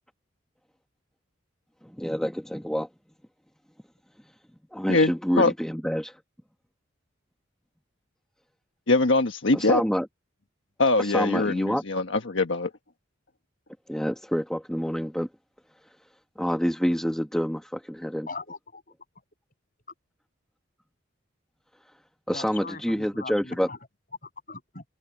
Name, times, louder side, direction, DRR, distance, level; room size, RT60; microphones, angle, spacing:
voice 1, 1.8-2.9 4.7-6.2 9.5-10.1 11.0-11.8 13.9-15.3 16.4-18.3 22.3-23.7, equal, 5° left, 1.2 m, -27 dB
voice 2, 8.9-9.8 10.8-12.7, left 2 dB, 70° left, 1.4 m, -22 dB
voice 3, 18.3-18.8 22.3-23.8 24.2-24.8, left 3 dB, 45° left, 6.9 m, -40 dB
head